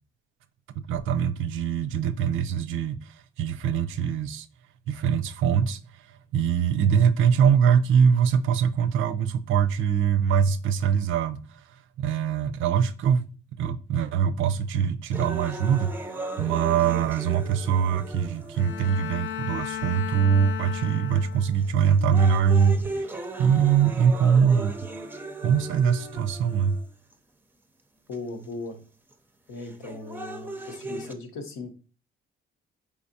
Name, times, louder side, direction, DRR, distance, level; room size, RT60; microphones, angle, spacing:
voice 1, 0.8-4.5 4.9-13.2 13.6-24.8 25.4-26.8, right 7 dB, 80° right, 0.4 m, -23 dB
sound 1, 15.1-19.1 19.9-20.0 20.8-21.1 21.6-27.1 28.1-28.2 29.6-31.1, right 2 dB, 10° right, 0.5 m, -37 dB
Bowed string instrument, 18.5-21.7, left 10 dB, 75° left, 0.4 m, -35 dB
voice 2, 28.1-28.8 29.5-31.7, left 3 dB, 90° left, 0.9 m, -37 dB
4.7 x 3.5 x 2.7 m
cardioid pair, 90°, 20 cm